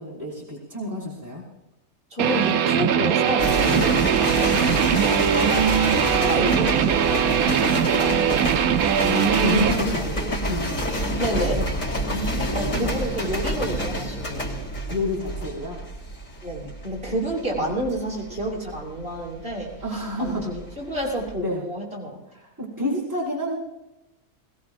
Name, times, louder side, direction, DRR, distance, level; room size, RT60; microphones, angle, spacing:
voice 1, 0.0-1.4 3.7-3.9 9.0-11.6 12.1-12.9 14.9-15.8 17.6-17.7 19.8-20.5 21.4-21.6 22.4-23.6, left 1 dB, 10° right, -6 dB, 5.6 m, -29 dB
voice 2, 2.1-4.4 5.3-5.8 6.1-8.6 8.9-9.3 9.8-10.1 11.2-11.6 12.5-14.6 16.4-22.2, right 1 dB, 40° right, -5 dB, 7.0 m, -30 dB
Guitar, 2.2-9.8, right 8 dB, 80° right, 1.2 m, -21 dB
sound 1, 3.4-20.6 20.9-21.3, equal, 60° left, 3.9 m, -28 dB
21.5 x 21.0 x 2.6 m, 0.95 s
omnidirectional pair, 1.5 m